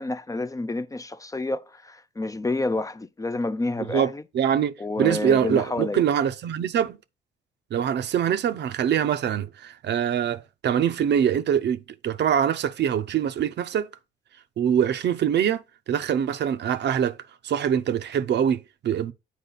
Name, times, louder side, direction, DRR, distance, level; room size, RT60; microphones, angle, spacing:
voice 1, 0.0-4.2 4.8-6.0, left 2 dB, 15° left, 0.4 m, -29 dB
voice 2, 3.9-7.0 7.7-13.9 14.6-17.2 17.4-19.1, right 9 dB, 60° right, 0.6 m, -24 dB
8.3 x 4.5 x 4.0 m
cardioid pair, 90°, 20 cm